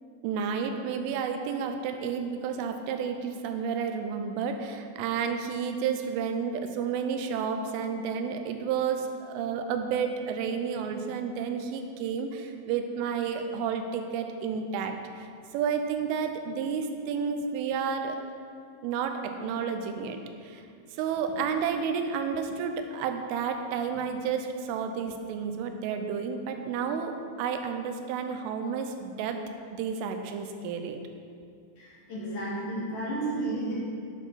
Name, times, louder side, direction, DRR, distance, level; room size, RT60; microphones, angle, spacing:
voice 1, 0.2-15.3 15.5-18.2 18.8-20.6 21.0-29.4 29.7-31.0, right 6 dB, 85° right, 6 dB, 3.3 m, -31 dB
voice 2, 31.8-33.8, right 2 dB, 55° left, -6 dB, 3.4 m, -32 dB
12.0 x 10.0 x 4.2 m, 2.4 s
omnidirectional pair, 5.5 m